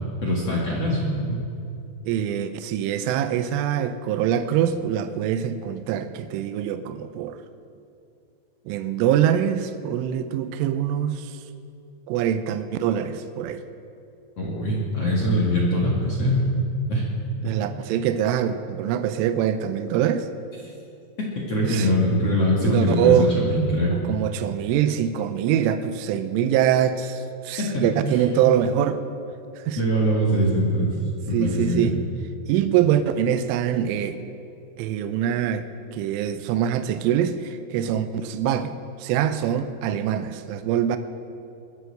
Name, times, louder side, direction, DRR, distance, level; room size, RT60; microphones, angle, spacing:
voice 1, 0.2-1.4 14.4-16.5 16.9-17.1 21.5-24.0 28.1-28.2 29.8-30.9 31.3-31.9, equal, 50° left, -4 dB, 2.0 m, -22 dB
voice 2, 2.1-7.4 8.7-11.4 12.1-13.6 17.4-20.3 21.6-21.9 22.6-23.3 23.9-29.0 29.6-29.8 31.3-32.0 32.5-34.2 34.8-41.0, right 9 dB, 85° right, 10 dB, 3.2 m, -24 dB
22.5 x 8.1 x 6.5 m, 2.6 s
omnidirectional pair, 5.7 m